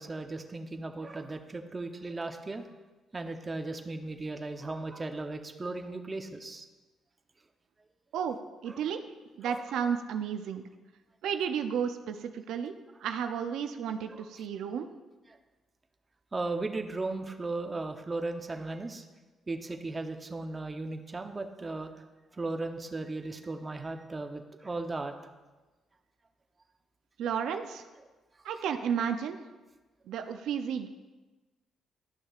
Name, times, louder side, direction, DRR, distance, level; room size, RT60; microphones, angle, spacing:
voice 1, 0.0-2.7 3.1-6.6 8.7-8.8 9.4-9.6 14.1-14.3 16.3-19.0 19.5-21.9 22.4-25.1, right 2 dB, 25° right, 6 dB, 0.7 m, -36 dB
voice 2, 8.1-9.0 9.4-10.6 11.2-12.7 13.0-14.9 27.2-27.8 28.4-29.4 30.1-30.9, right 7 dB, 80° right, 7 dB, 0.4 m, -32 dB
12.0 x 6.3 x 2.4 m, 1.2 s
cardioid pair, 90°, 0 cm